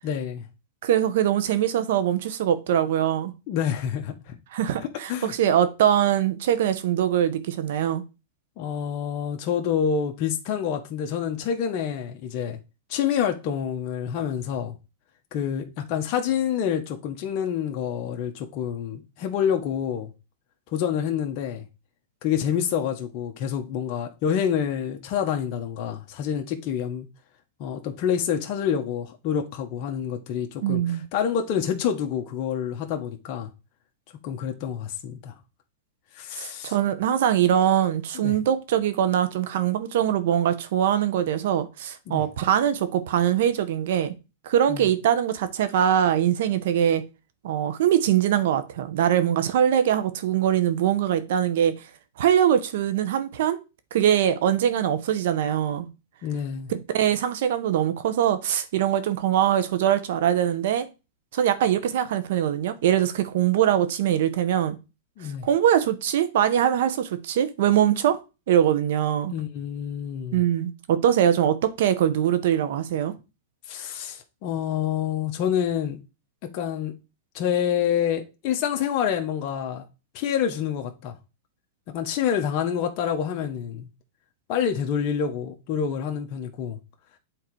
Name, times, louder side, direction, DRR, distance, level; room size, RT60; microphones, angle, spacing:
voice 1, 0.0-0.5 3.5-4.4 5.1-5.3 8.6-12.6 12.9-14.7 15.3-20.1 20.7-21.6 22.2-27.1 27.6-30.8 31.1-33.5 34.2-35.3 36.1-36.7 38.1-38.4 42.1-42.2 44.7-44.8 56.2-56.7 65.2-65.5 69.3-70.4 73.7-76.0 76.4-76.9 77.3-79.8 80.1-81.1 81.9-83.9 84.5-86.8, left 8 dB, 45° left, 1.1 m, -27 dB
voice 2, 0.8-3.3 4.5-8.0 30.6-31.0 36.4-44.1 44.4-47.0 47.4-51.7 52.2-53.6 53.9-55.9 56.7-60.9 61.3-64.8 65.4-68.2 68.5-69.3 70.3-73.1, right 10 dB, 70° right, 1.0 m, -22 dB
7.9 x 3.9 x 4.7 m
hypercardioid pair, 135°, 0 cm